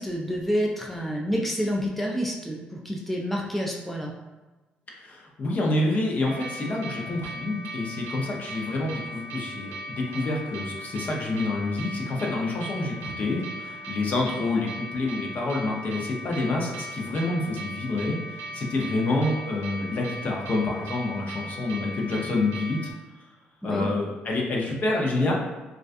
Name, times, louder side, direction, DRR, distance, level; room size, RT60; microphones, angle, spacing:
voice 1, 0.0-4.1 23.6-23.9, equal, 5° left, -1 dB, 0.4 m, -28 dB
voice 2, 5.0-22.9 23.6-25.3, left 2 dB, 50° left, -1 dB, 0.6 m, -28 dB
sound 1, 6.2-22.9, right 1 dB, 90° right, 0.5 m, -38 dB
2.3 x 2.2 x 2.5 m, 1.2 s
cardioid pair, 80°, 4 cm